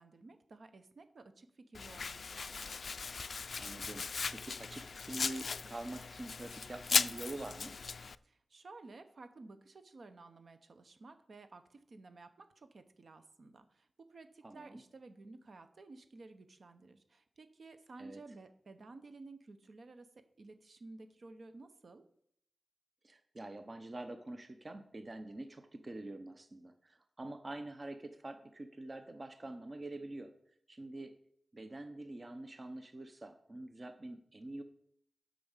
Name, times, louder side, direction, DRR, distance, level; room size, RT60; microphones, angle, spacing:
voice 1, 0.0-2.8 8.2-22.0, right 3 dB, 60° right, 9 dB, 1.0 m, -54 dB
Domestic sounds home sounds, 1.7-8.1, left 5 dB, 60° left, 0.3 m, -37 dB
voice 2, 3.6-7.8 14.4-14.8 18.0-18.2 23.0-30.3 30.7-31.1 31.5-34.6, right 2 dB, 35° right, 8 dB, 0.8 m, -46 dB
8.5 x 5.3 x 7.3 m, 0.66 s
wide cardioid pair, 110°, 0 cm